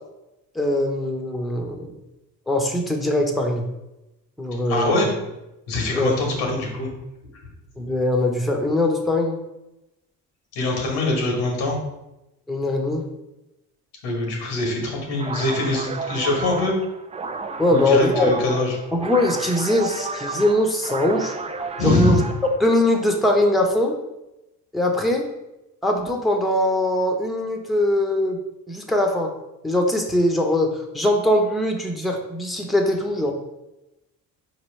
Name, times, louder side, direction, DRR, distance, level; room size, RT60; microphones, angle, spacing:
voice 1, 0.5-1.9 2.5-3.7 4.4-5.1 5.9-6.1 7.8-9.4 12.5-13.0 17.6-18.3 18.9-21.3 21.8-22.2 22.6-23.9 24.7-25.3 25.8-28.4 28.7-29.3 29.6-33.3, left 1 dB, ahead, 2 dB, 0.8 m, -21 dB
voice 2, 4.7-5.1 5.7-6.9 10.5-11.8 14.0-16.7 17.7-18.8 21.8-22.2, left 2 dB, 85° left, 0 dB, 1.2 m, -23 dB
sound 1, 15.1-22.6, right 3 dB, 15° right, 0.3 m, -32 dB
4.4 x 2.9 x 3.2 m, 0.93 s
supercardioid pair, 60°, 41 cm